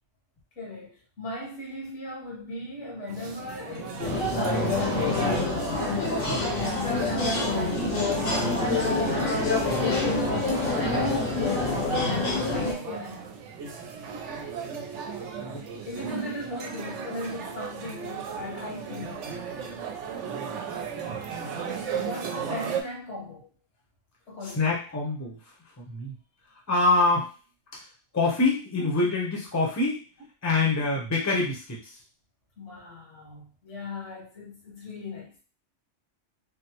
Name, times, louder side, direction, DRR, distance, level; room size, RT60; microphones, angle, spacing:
voice 1, 0.5-6.0 6.4-10.5 12.0-13.3 15.8-19.2 22.0-23.5 24.3-24.8 28.8-28.9 32.6-35.4, left 1 dB, 70° left, -4 dB, 1.6 m, -38 dB
sound 1, 3.1-22.8, right 6 dB, 75° right, 0.9 m, -36 dB
sound 2, 4.0-12.7, left 3 dB, 50° left, 1.0 m, -26 dB
voice 2, 6.3-6.7 10.7-11.1 15.3-15.6 20.2-21.1 24.5-26.1 26.7-27.3 27.7-27.8 28.1-30.0 30.4-32.0, left 3 dB, 15° left, -2 dB, 0.7 m, -26 dB
3.5 x 2.0 x 2.9 m, 0.34 s
omnidirectional pair, 1.3 m